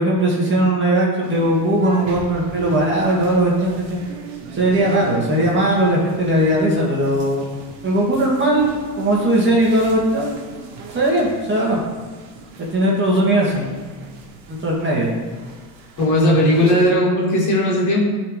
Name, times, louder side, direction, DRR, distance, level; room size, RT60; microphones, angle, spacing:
voice 1, 0.0-4.0 4.5-7.5 7.8-10.3 10.9-11.8 12.6-13.7 14.5-15.1, right 1 dB, 25° right, -4 dB, 1.9 m, -18 dB
sound 1, 1.2-16.9, right 4 dB, 60° right, 1.6 m, -37 dB
voice 2, 16.0-18.0, left 1 dB, 35° left, -3 dB, 2.4 m, -17 dB
12.0 x 4.1 x 3.3 m, 1.4 s
supercardioid pair, 100°, 49 cm